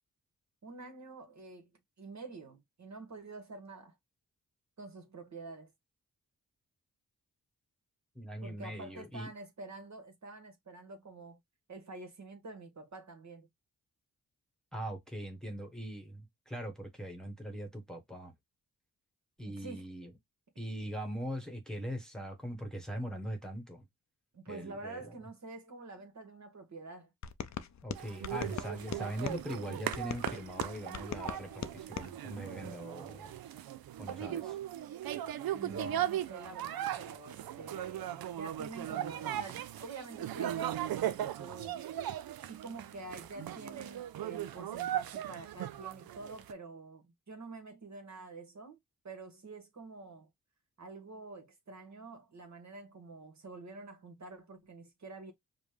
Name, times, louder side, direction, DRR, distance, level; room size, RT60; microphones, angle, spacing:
voice 1, 0.6-1.7 2.0-4.0 4.8-5.7 8.4-11.4 11.7-13.5 19.4-19.8 24.3-27.1 35.5-41.8 42.4-48.8 49.0-50.3 50.8-55.3, right 3 dB, 50° right, 1.2 m, -47 dB
voice 2, 8.1-9.3 14.7-18.3 19.4-20.1 20.6-23.8 24.5-25.1 27.8-33.3 34.0-34.6, equal, ahead, 1.2 m, -41 dB
sound 1, 27.2-29.4 29.9-32.1, left 8 dB, 50° left, 0.5 m, -41 dB
sound 2, 27.9-46.5, right 12 dB, 80° right, 0.5 m, -38 dB
5.1 x 2.1 x 3.2 m
cardioid pair, 60°, 36 cm